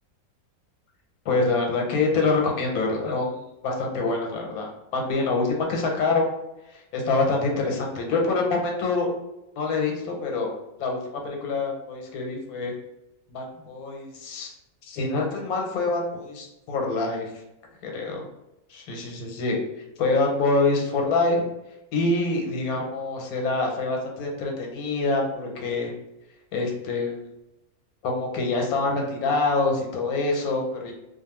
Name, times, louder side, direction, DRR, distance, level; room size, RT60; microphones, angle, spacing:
voice 1, 1.3-3.4 3.6-6.3 6.9-9.1 9.6-10.5 10.8-11.0 11.2-12.7 13.3-14.5 14.8-17.3 17.8-18.2 18.7-19.6 20.0-21.4 21.9-25.9 26.5-27.2 28.0-30.9, left 3 dB, 85° left, 1 dB, 1.1 m, -25 dB
2.5 x 2.3 x 2.9 m, 0.91 s
omnidirectional pair, 1.5 m